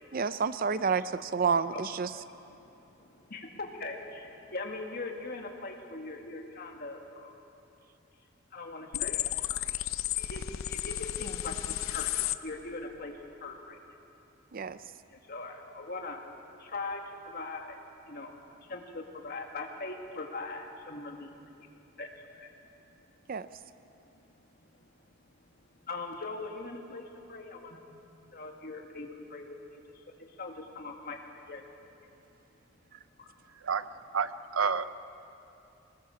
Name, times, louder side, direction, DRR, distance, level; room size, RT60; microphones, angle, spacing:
voice 1, 0.1-2.2 14.5-14.8 23.3-23.5 32.9-33.0, right 5 dB, 45° right, 14 dB, 0.5 m, -29 dB
voice 2, 2.5-7.4 8.5-9.7 10.3-12.1 12.4-13.1 13.4-13.8 15.1-16.2 16.6-17.8 18.1-18.3 18.6-21.3 21.6-21.7 22.0-22.5 23.1-23.2 24.0-24.3 24.6-24.7 25.8-27.8 28.3-29.8 30.3-31.2 31.5-31.6 33.2-33.3, left 3 dB, 50° left, 2 dB, 2.1 m, -41 dB
sound 1, 8.9-12.4, left 12 dB, 90° left, 0.6 m, -33 dB
voice 3, 34.1-34.9, right 6 dB, 90° right, 14 dB, 0.7 m, -29 dB
23.0 x 19.5 x 7.1 m, 2.8 s
head